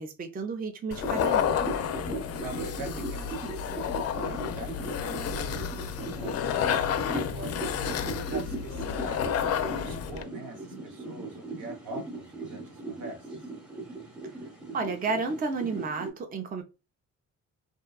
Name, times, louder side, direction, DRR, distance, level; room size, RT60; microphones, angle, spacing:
voice 1, 0.0-1.5 14.7-16.6, right 4 dB, 30° right, 0.5 m, -32 dB
sound 1, 0.9-10.2, left 8 dB, 55° left, 0.4 m, -30 dB
sound 2, 1.0-16.1, right 3 dB, 5° right, 0.9 m, -39 dB
voice 2, 2.4-6.5 7.1-9.3 9.6-13.3, right 2 dB, 75° right, 0.8 m, -43 dB
2.7 x 2.2 x 2.2 m
cardioid pair, 90°, 30 cm